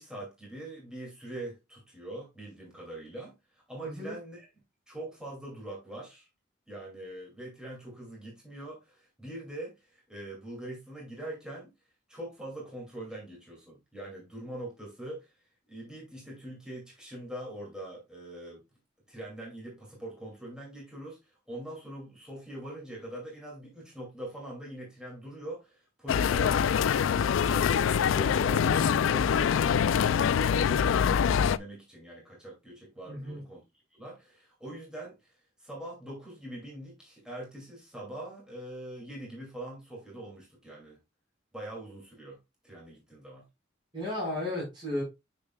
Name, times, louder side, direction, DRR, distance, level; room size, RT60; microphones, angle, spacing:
voice 1, 0.0-4.5 4.9-6.3 6.7-11.7 12.1-15.3 15.7-18.6 19.1-26.6 27.1-33.6 33.9-35.3 35.6-41.0 41.5-42.4 42.6-43.4, right 1 dB, 5° right, 2.4 m, -43 dB
voice 2, 3.8-4.1 33.1-33.4 43.9-45.0, left 1 dB, 25° right, 4.6 m, -34 dB
sound 1, 26.1-31.6, left 7 dB, 85° left, 0.3 m, -24 dB
6.7 x 6.6 x 2.3 m
head